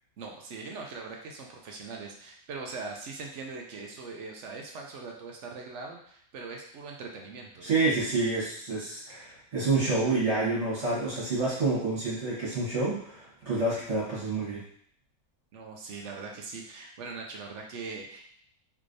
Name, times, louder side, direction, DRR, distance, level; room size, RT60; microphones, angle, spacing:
voice 1, 0.2-7.7 15.5-18.3, right 4 dB, 65° right, 1 dB, 0.7 m, -41 dB
voice 2, 7.6-14.6, right 3 dB, 50° right, -9 dB, 1.7 m, -28 dB
3.4 x 3.1 x 2.6 m, 0.63 s
omnidirectional pair, 1.6 m